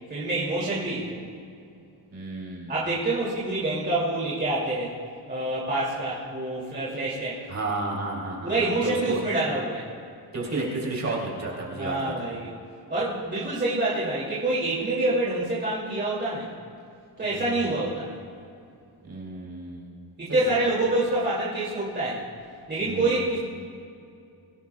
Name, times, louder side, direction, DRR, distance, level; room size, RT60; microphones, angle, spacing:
voice 1, 0.1-1.2 2.7-4.9 5.3-7.5 8.4-9.9 11.8-12.5 12.9-16.5 17.2-18.1 20.2-22.2 22.7-23.4, right 2 dB, 25° right, -8 dB, 2.9 m, -27 dB
voice 2, 2.1-2.8 7.5-9.2 10.3-12.1 17.2-17.7 19.0-20.0 20.3-20.6 22.8-23.3, right 2 dB, 40° right, -3 dB, 3.7 m, -32 dB
24.0 x 18.0 x 2.4 m, 2.4 s
wide cardioid pair, 155°, 41 cm